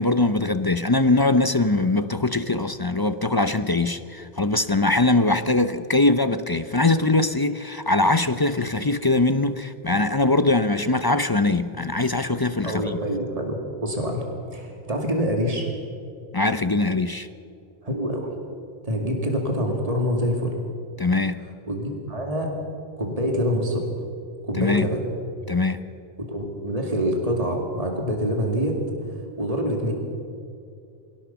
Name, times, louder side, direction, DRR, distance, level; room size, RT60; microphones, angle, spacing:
voice 1, 0.0-13.0 16.3-17.3 21.0-21.5 24.6-24.9 25.5-25.9, left 2 dB, 25° left, 12 dB, 0.6 m, -22 dB
voice 2, 12.6-14.3 14.5-15.7 17.8-18.3 18.8-20.5 21.7-22.5 23.0-23.9 24.5-25.0 26.2-28.8 29.4-29.9, equal, 35° right, 2 dB, 2.5 m, -25 dB
23.0 x 17.0 x 7.0 m, 2.5 s
omnidirectional pair, 1.1 m